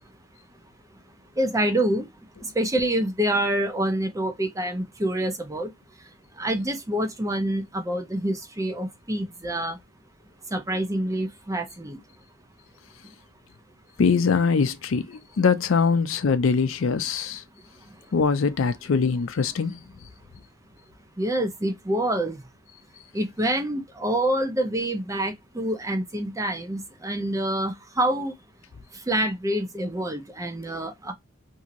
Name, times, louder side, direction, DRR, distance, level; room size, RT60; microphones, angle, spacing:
voice 1, 1.4-2.1 2.4-5.7 6.4-9.8 10.5-12.0 21.2-22.4 23.1-28.3 29.1-31.1, right 1 dB, 15° right, 0.7 m, -26 dB
voice 2, 14.0-17.4 18.1-19.8, left 5 dB, 75° left, 0.5 m, -22 dB
2.9 x 2.7 x 2.4 m
head